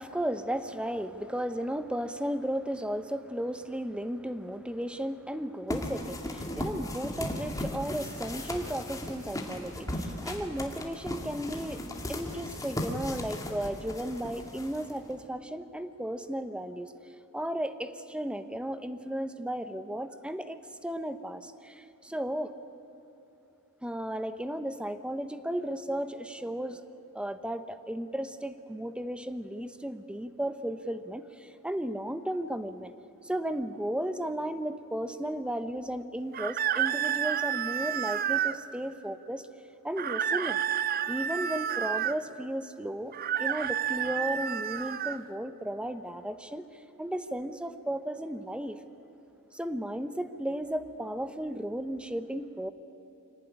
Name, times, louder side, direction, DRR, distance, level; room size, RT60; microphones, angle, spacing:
voice 1, 0.0-16.9 17.3-22.5 23.8-26.8 27.1-32.9 33.2-39.5 39.8-40.6 41.1-43.1 43.4-46.7 47.0-48.8 49.5-52.7, right 1 dB, 5° right, 11 dB, 0.8 m, -34 dB
sound 1, 5.7-15.2, left 1 dB, 15° left, 2.3 m, -37 dB
sound 2, 36.3-38.6 40.0-42.2 43.1-45.2, right 9 dB, 40° right, 0.5 m, -30 dB
25.0 x 18.0 x 9.9 m, 2.9 s
head